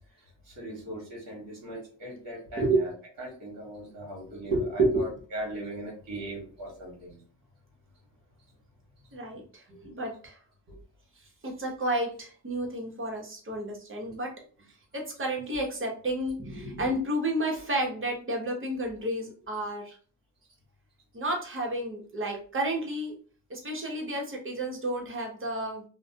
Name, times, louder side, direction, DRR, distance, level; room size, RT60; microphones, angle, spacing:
voice 1, 0.4-2.9 3.2-7.2 9.7-9.9 10.7-10.8 14.0-14.1, right 1 dB, 45° right, -3 dB, 1.2 m, -40 dB
voice 2, 4.5-5.0 9.1-10.4 11.4-14.3 14.9-20.0 21.1-23.2 23.5-25.8, right 1 dB, 30° right, 0 dB, 0.9 m, -30 dB
2.4 x 2.1 x 2.7 m, 0.41 s
cardioid pair, 85°, 44 cm